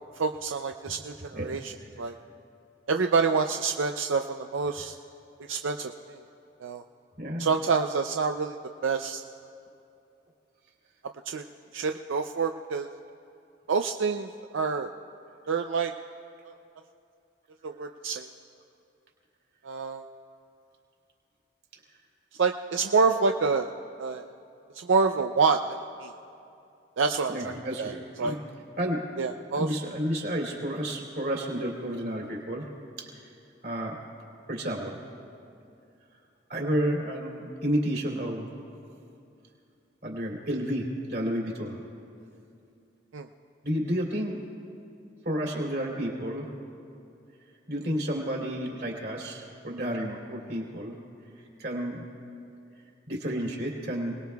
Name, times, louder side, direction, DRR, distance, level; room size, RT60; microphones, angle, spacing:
voice 1, 0.2-2.1 2.9-4.9 5.5-6.2 6.6-6.8 7.4-8.6 8.8-9.2 11.3-11.4 11.7-12.9 13.7-14.9 15.5-15.9 17.6-18.3 19.6-20.0 22.4-23.7 24.0-24.3 24.7-25.6 26.0-26.1 27.0-27.9 28.2-28.4 29.2-29.7 43.1-43.3, right 4 dB, 90° right, 5 dB, 0.5 m, -27 dB
voice 2, 1.3-1.9 7.2-7.5 27.3-28.4 28.8-29.1 29.5-32.7 33.0-33.1 33.6-34.0 34.5-35.0 36.5-38.5 40.0-41.8 43.6-44.6 45.2-46.5 47.7-51.0 51.6-52.0 53.1-54.2, equal, 55° right, -1 dB, 3.0 m, -31 dB
28.0 x 19.5 x 2.3 m, 2.6 s
head